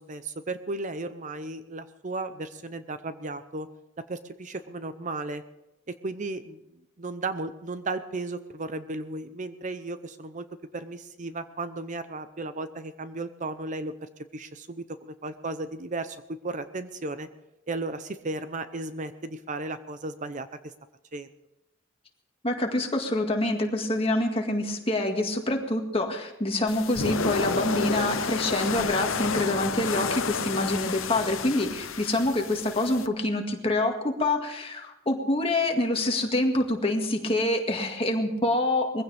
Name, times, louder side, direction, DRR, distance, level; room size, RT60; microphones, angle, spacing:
voice 1, 0.0-3.7 4.0-5.4 5.9-6.6 7.0-10.5 10.7-17.3 17.7-20.7 21.1-21.3, right 2 dB, 40° right, 11 dB, 0.7 m, -35 dB
voice 2, 22.4-39.0, left 1 dB, 30° left, 3 dB, 2.0 m, -26 dB
sound 1, 26.7-33.1, left 5 dB, 90° left, 0.9 m, -30 dB
21.5 x 15.5 x 3.4 m, 0.92 s
head